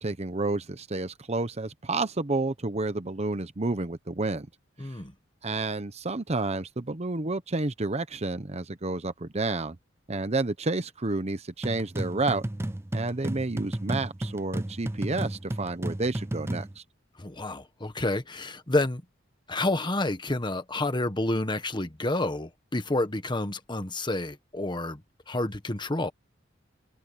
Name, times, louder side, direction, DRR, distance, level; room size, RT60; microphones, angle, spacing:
voice 1, 0.0-4.5 4.8-4.9 5.4-9.8 10.1-12.4 12.9-16.8, right 3 dB, 35° right, 0.9 m, -30 dB
voice 2, 4.8-5.1 17.2-19.0 19.5-25.0 25.3-26.1, left 2 dB, 25° left, 1.3 m, -29 dB
sound 1, 11.6-16.7, right 1 dB, 15° right, 0.5 m, -33 dB
head